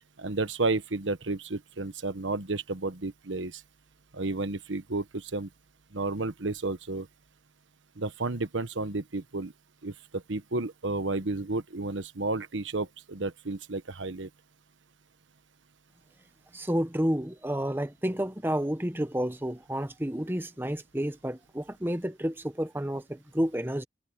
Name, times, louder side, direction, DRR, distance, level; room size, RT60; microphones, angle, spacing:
voice 1, 0.2-3.6 4.1-5.5 5.9-7.1 8.0-9.5 9.8-14.3, right 2 dB, 80° right, 1.2 m, -32 dB
voice 2, 16.5-23.8, equal, 10° right, 0.9 m, -30 dB
head